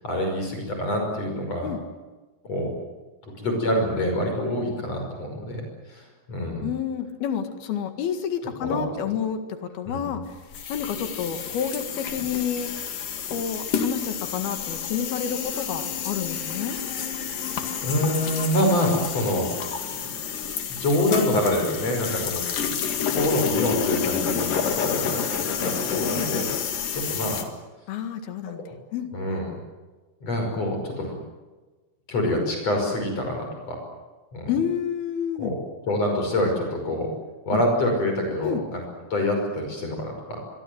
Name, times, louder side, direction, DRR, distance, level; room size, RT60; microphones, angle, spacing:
voice 1, 0.0-1.7 2.4-2.7 3.2-6.7 8.6-8.9 9.9-10.2 17.8-19.5 19.9-20.1 20.8-22.8 23.1-26.5 26.9-27.4 28.5-28.7 29.1-29.6 30.2-31.2 32.1-33.8 34.3-34.5 35.4-35.6 35.8-37.1 37.5-38.8 39.1-40.4, left 1 dB, 45° left, 3 dB, 6.5 m, -26 dB
voice 2, 6.6-10.2 10.7-12.7 13.3-16.8 25.9-26.3 27.9-28.6 28.9-29.1 34.5-35.6 37.5-37.6 38.4-38.6, left 8 dB, 90° left, 7 dB, 3.8 m, -29 dB
sound 1, 10.5-27.4, left 7 dB, 65° left, 3.7 m, -29 dB
25.5 x 23.0 x 8.0 m, 1.3 s
omnidirectional pair, 4.3 m